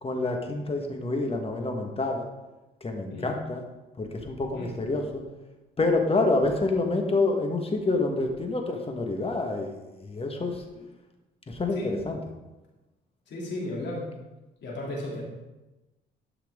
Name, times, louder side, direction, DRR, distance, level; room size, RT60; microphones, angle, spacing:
voice 1, 0.0-2.2 2.8-3.6 4.0-5.2 5.8-10.6 11.5-12.2, left 2 dB, 30° left, 3 dB, 1.5 m, -27 dB
voice 2, 13.3-14.1 14.6-15.2, left 1 dB, 65° left, -3 dB, 3.0 m, -34 dB
12.0 x 5.8 x 3.7 m, 1.1 s
cardioid pair, 90°, 20 cm